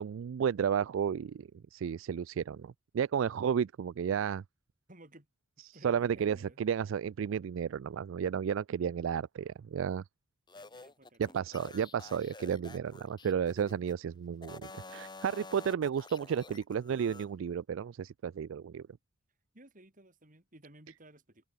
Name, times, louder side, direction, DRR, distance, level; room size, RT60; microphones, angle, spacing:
voice 1, 0.0-4.4 5.7-10.0 11.2-18.9, right 7 dB, 70° right, 0.3 m, -33 dB
voice 2, 4.9-5.3 5.6-6.6 10.5-12.1 19.5-21.5, right 1 dB, 40° right, 4.6 m, -57 dB
sound 1, 10.5-14.0 14.4-17.3, left 3 dB, 20° left, 1.8 m, -50 dB
head